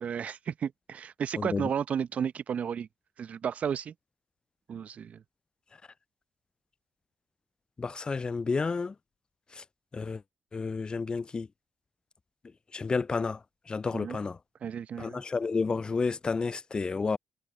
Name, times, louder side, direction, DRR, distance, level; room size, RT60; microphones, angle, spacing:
voice 1, 0.0-2.9 3.2-3.9 4.7-5.2 13.9-14.2 14.6-15.2, right 8 dB, 55° right, 0.9 m, -33 dB
voice 2, 1.4-1.7 7.8-8.9 9.6-9.7 9.9-10.2 10.5-11.5 12.7-13.4 13.7-14.4 15.0-17.2, left 4 dB, 30° left, 0.3 m, -30 dB
hypercardioid pair, 40°, 3 cm